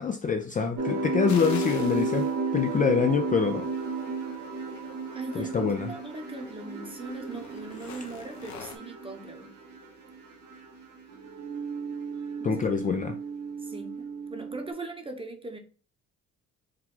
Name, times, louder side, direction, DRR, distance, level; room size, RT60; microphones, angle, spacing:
voice 1, 0.0-3.7 5.4-5.9 12.4-13.2, left 6 dB, 25° left, 0.4 m, -26 dB
sound 1, 0.8-9.9 10.2-10.9, right 3 dB, 80° right, 1.7 m, -33 dB
sound 2, 1.3-8.8, left 6 dB, 70° left, 0.9 m, -48 dB
sound 3, 3.0-14.7, right 6 dB, 65° right, 0.7 m, -42 dB
voice 2, 5.1-9.5 12.4-12.8 13.6-15.6, right 2 dB, 20° right, 0.9 m, -40 dB
4.7 x 2.3 x 3.7 m
cardioid pair, 90°, 30 cm